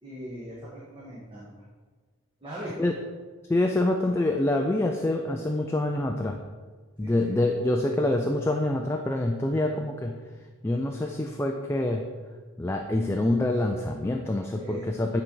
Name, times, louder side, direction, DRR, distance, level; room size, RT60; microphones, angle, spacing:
voice 1, 0.0-1.6 2.4-2.9 7.0-7.5 14.5-14.9, right 1 dB, 25° right, -7 dB, 1.3 m, -40 dB
voice 2, 3.5-6.4 7.0-10.2 10.6-12.1 12.6-15.2, left 1 dB, 10° left, 3 dB, 0.3 m, -26 dB
9.7 x 4.0 x 4.5 m, 1.4 s
head